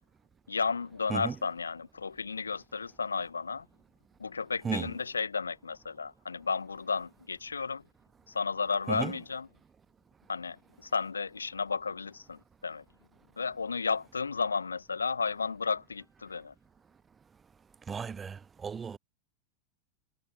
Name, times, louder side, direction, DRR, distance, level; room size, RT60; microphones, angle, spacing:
voice 1, 0.5-3.7 4.2-7.8 8.3-9.5 10.3-12.8 13.4-16.5, left 5 dB, 75° left, 1.5 m, -33 dB
voice 2, 17.9-19.0, right 6 dB, 20° right, 0.5 m, -34 dB
figure-of-eight pair, 90°, 0 cm